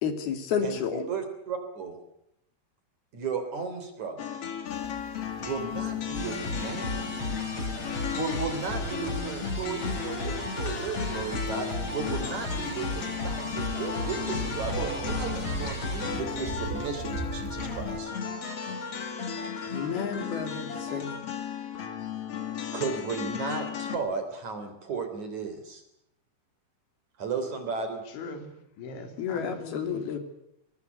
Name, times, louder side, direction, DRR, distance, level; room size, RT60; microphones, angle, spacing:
voice 1, 0.0-1.0 19.7-21.2 29.2-30.2, left 7 dB, 60° left, 4.3 m, -31 dB
voice 2, 0.6-2.0 3.1-4.2 5.4-7.1 8.1-18.1 22.7-25.8 27.2-28.0, right 5 dB, 45° right, 4.2 m, -35 dB
sound 1, 4.2-24.0, left 8 dB, 45° left, 2.5 m, -36 dB
sound 2, 4.7-18.0, right 4 dB, 80° right, 6.3 m, -41 dB
sound 3, 6.1-21.2, left 2 dB, 25° left, 5.6 m, -35 dB
voice 3, 28.1-30.2, left 3 dB, 85° left, 5.6 m, -41 dB
23.0 x 21.5 x 8.2 m
omnidirectional pair, 5.2 m